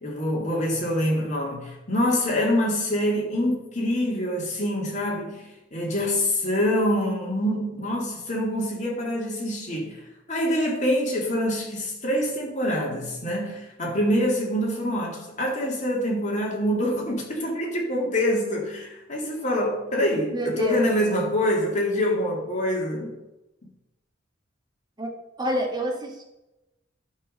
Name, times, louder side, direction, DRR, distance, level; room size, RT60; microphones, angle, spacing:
voice 1, 0.0-10.0 10.3-23.2, equal, 40° left, 2.5 m, -25 dB
voice 2, 20.3-20.9 25.0-25.1 25.4-26.2, right 1 dB, 20° right, 1.8 m, -27 dB
11.0 x 4.8 x 6.6 m
head